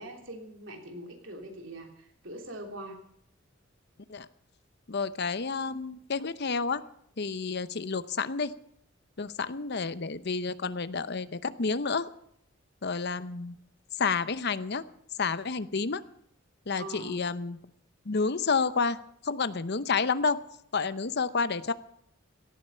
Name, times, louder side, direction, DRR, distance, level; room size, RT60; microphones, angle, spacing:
voice 1, 0.0-3.0 16.8-17.2, right 1 dB, 70° right, 3 dB, 3.3 m, -42 dB
voice 2, 4.9-6.8 7.2-8.5 9.2-12.1 12.8-13.6 14.0-14.8 15.2-16.0 16.7-17.6 18.0-19.0 19.2-20.4 20.7-21.7, left 4 dB, 55° left, 13 dB, 0.8 m, -30 dB
18.0 x 13.5 x 5.6 m, 0.71 s
head